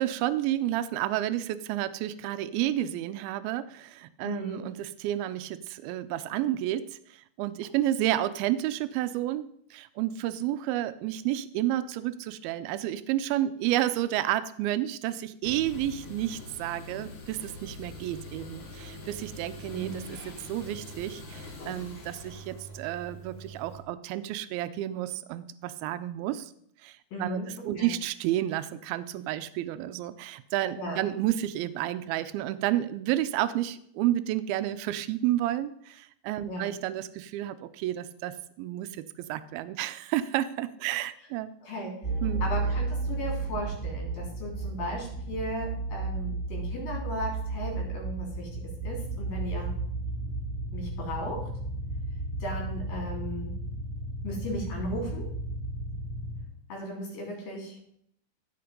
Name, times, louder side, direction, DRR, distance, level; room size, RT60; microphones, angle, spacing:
voice 1, 0.0-26.5 26.8-27.4 27.7-41.5 42.2-42.5, right 13 dB, 85° right, 13 dB, 2.5 m, -31 dB
voice 2, 4.2-4.6 19.7-20.0 27.1-27.5 27.7-27.9 30.8-31.0 36.5-36.7 41.6-41.9 42.4-49.7 50.7-51.4 52.4-53.5 54.2-55.3 56.7-57.8, equal, 65° left, 0 dB, 4.9 m, -36 dB
sound 1, 15.4-23.8, left 1 dB, 45° left, 2.2 m, -44 dB
sound 2, 42.0-56.4, right 3 dB, 20° left, 2.6 m, -33 dB
15.5 x 5.2 x 5.2 m, 0.68 s
omnidirectional pair, 4.3 m